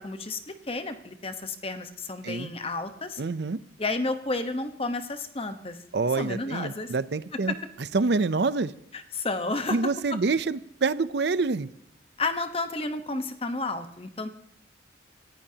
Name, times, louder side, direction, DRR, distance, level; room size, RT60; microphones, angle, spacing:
voice 1, 0.0-3.2 3.8-5.8 6.1-6.9 7.3-7.6 8.9-9.8 10.1-10.2 12.2-14.3, left 3 dB, 30° left, 8 dB, 1.1 m, -31 dB
voice 2, 3.2-3.6 5.9-7.5 7.9-8.7 9.7-11.7, right 3 dB, 60° right, 16 dB, 0.5 m, -26 dB
27.5 x 14.5 x 2.8 m, 0.73 s
head